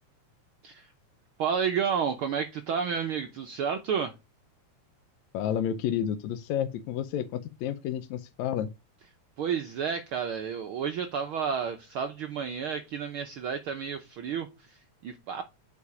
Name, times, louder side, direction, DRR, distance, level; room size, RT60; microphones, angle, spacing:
voice 1, 1.4-4.1 9.4-15.4, right 7 dB, 90° right, 1.1 m, -31 dB
voice 2, 5.3-8.7, left 10 dB, 75° left, 1.8 m, -30 dB
8.4 x 5.0 x 4.9 m
omnidirectional pair, 3.5 m